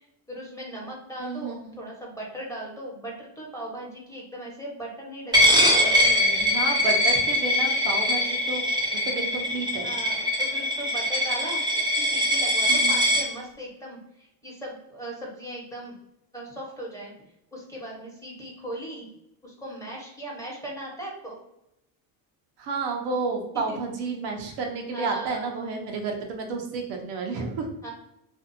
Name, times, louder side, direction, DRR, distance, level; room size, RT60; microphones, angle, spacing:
voice 1, 0.0-6.5 9.8-15.9 16.3-17.1 17.5-19.1 19.4-21.4 23.7-23.8 24.9-25.6 27.8-27.9, right 1 dB, 5° left, -4 dB, 1.0 m, -38 dB
voice 2, 1.2-1.8 6.3-8.6 8.9-9.9 12.7-13.0 22.6-27.7, right 4 dB, 75° right, 1 dB, 0.8 m, -31 dB
Coin (dropping), 5.3-13.2, equal, 10° right, 0.5 m, -22 dB
2.6 x 2.4 x 2.6 m, 0.82 s
supercardioid pair, 85°, 50 cm